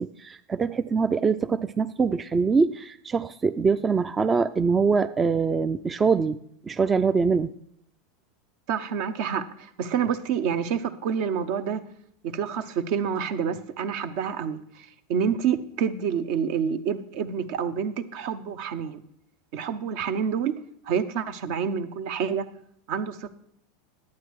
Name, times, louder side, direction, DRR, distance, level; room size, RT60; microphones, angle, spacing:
voice 1, 0.0-6.4 6.7-7.5, right 5 dB, 20° right, 11 dB, 0.4 m, -23 dB
voice 2, 8.7-11.8 12.2-19.0 19.5-20.6 20.9-22.4 22.9-23.4, right 7 dB, 60° right, 11 dB, 0.8 m, -28 dB
11.0 x 8.5 x 4.7 m, 0.70 s
hypercardioid pair, 100°, 0 cm